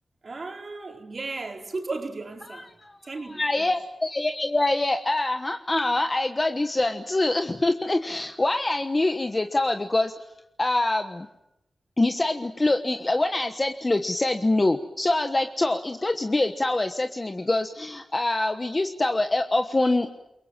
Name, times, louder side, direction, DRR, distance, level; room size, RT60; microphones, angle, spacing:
voice 1, 0.2-2.7 3.0-3.7, right 3 dB, 45° right, 4.4 m, -35 dB
voice 2, 3.3-10.1 10.6-11.3 12.0-20.1, left 2 dB, 25° left, 1.3 m, -24 dB
29.0 x 23.5 x 7.5 m
wide cardioid pair, 150°, 0 cm